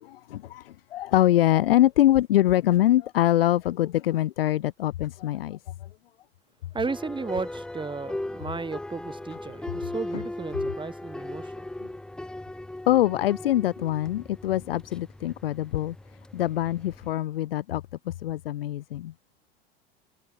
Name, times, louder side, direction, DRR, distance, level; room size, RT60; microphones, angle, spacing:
voice 1, 0.0-5.9 10.1-10.2 11.8-11.9 12.9-15.9 16.3-19.1, left 13 dB, 75° left, 1.4 m, -24 dB
voice 2, 6.7-11.7, right 4 dB, 15° right, 4.2 m, -34 dB
sound 1, 6.9-17.1, left 1 dB, 5° left, 0.4 m, -38 dB
figure-of-eight pair, 75°, 29 cm